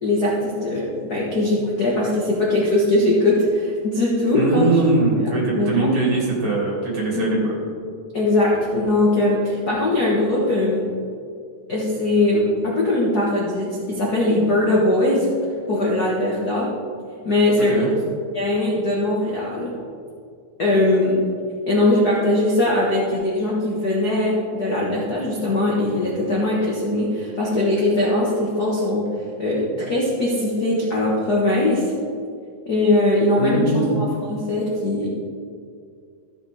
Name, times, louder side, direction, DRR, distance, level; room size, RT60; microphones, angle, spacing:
voice 1, 0.0-4.6 5.5-5.9 7.1-7.4 8.1-10.8 11.7-15.3 15.7-16.7 17.2-17.9 18.3-19.7 20.6-21.2 21.7-29.1 29.4-31.8 32.6-35.1, left 1 dB, 60° left, -5 dB, 1.0 m, -20 dB
voice 2, 4.3-7.5 17.7-17.9 33.4-34.1, right 2 dB, 45° right, -4 dB, 3.2 m, -21 dB
14.5 x 6.9 x 3.5 m, 2.2 s
omnidirectional pair, 4.0 m